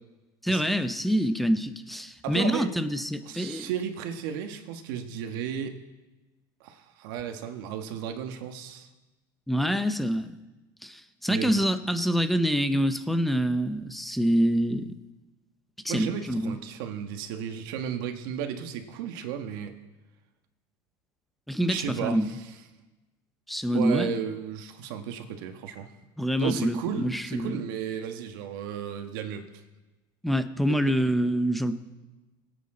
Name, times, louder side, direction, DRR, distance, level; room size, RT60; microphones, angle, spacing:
voice 1, 0.4-3.7 9.5-10.3 10.8-15.0 15.8-16.6 21.5-22.3 23.5-24.2 26.2-27.6 30.2-31.8, equal, ahead, 9 dB, 0.7 m, -26 dB
voice 2, 2.2-2.7 3.3-5.8 6.6-8.9 11.3-11.6 15.9-19.7 21.7-22.5 23.7-25.9 26.4-29.5 30.9-31.0, right 8 dB, 75° right, 6 dB, 1.6 m, -34 dB
22.5 x 8.6 x 3.9 m, 1.1 s
cardioid pair, 150°, 11 cm